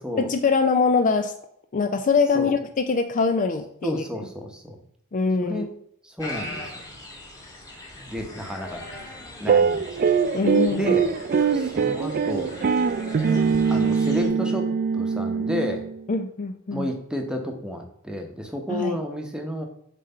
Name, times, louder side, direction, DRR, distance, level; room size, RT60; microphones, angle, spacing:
voice 1, 0.2-1.3 1.7-4.0 5.1-5.6 10.3-10.9 16.1-16.9 18.7-18.9, left 4 dB, 35° left, 8 dB, 0.4 m, -23 dB
voice 2, 3.8-4.8 5.4-5.7 6.0-6.7 8.0-8.8 9.4-9.9 10.7-11.1 11.5-12.5 13.0-13.1 13.7-14.7 14.9-15.9 16.7-19.7, left 1 dB, 5° right, 3 dB, 0.9 m, -31 dB
sound 1, 6.2-14.3, left 1 dB, 15° left, 1.5 m, -40 dB
sound 2, 9.5-16.0, right 6 dB, 45° right, 0.3 m, -22 dB
7.4 x 3.3 x 5.5 m, 0.72 s
head